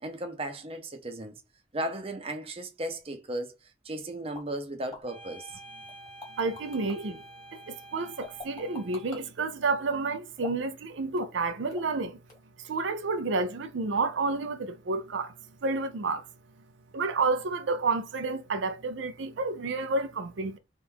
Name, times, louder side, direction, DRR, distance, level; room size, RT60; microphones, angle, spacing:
voice 1, 0.0-1.4 1.7-3.6 3.8-5.5 7.0-7.1, right 1 dB, 30° right, 0.7 m, -35 dB
sound 1, 4.3-4.5 4.9-5.0 5.9-7.0 8.2-9.2 10.4-10.7 11.2-11.4 11.7-12.0 12.3-12.4, left 3 dB, 20° left, 1.5 m, -43 dB
sound 2, 5.0-9.2, right 2 dB, ahead, 0.8 m, -49 dB
voice 2, 6.4-7.1 7.5-12.2 12.6-15.3 15.6-16.3 16.9-20.6, right 3 dB, 80° right, 0.5 m, -30 dB
3.6 x 2.5 x 4.6 m
head